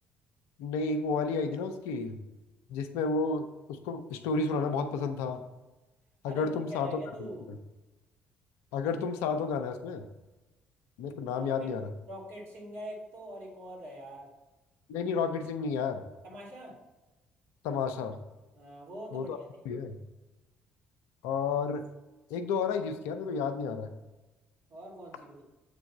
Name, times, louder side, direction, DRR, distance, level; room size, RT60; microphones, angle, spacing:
voice 1, 0.6-2.2 2.7-5.5 6.2-7.0 7.5-7.6 8.7-10.0 11.0-11.9 14.9-16.0 17.6-18.2 19.1-19.4 19.7-20.0 21.2-21.8 22.3-23.9, left 5 dB, 70° left, 9 dB, 0.5 m, -31 dB
voice 2, 6.3-7.5 11.3-11.7 12.1-14.3 16.2-16.8 18.5-19.3 24.7-25.4, equal, 55° right, -3 dB, 2.2 m, -43 dB
7.6 x 3.3 x 4.2 m, 1.1 s
hypercardioid pair, 50°, 5 cm